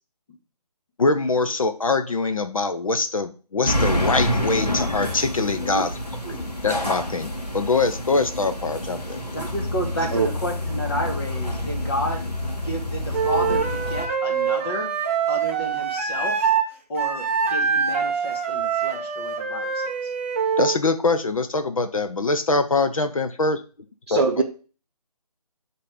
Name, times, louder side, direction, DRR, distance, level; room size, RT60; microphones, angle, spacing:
voice 1, 1.0-5.9 6.6-9.2 20.6-23.6 24.1-24.4, left 3 dB, 55° left, 7 dB, 0.8 m, -23 dB
sound 1, 3.6-14.0, left 1 dB, 85° left, 2.5 m, -28 dB
voice 2, 9.1-12.3 12.6-14.9 15.3-16.5 16.9-20.1, equal, 35° left, 1 dB, 2.3 m, -31 dB
Wind instrument woodwind instrument, 13.1-16.7 17.0-20.8, right 6 dB, 20° right, 0.7 m, -24 dB
voice 3, 24.1-24.4, right 4 dB, 40° right, 1 dB, 0.9 m, -20 dB
7.7 x 4.2 x 4.8 m, 0.37 s
figure-of-eight pair, 150°, 20 cm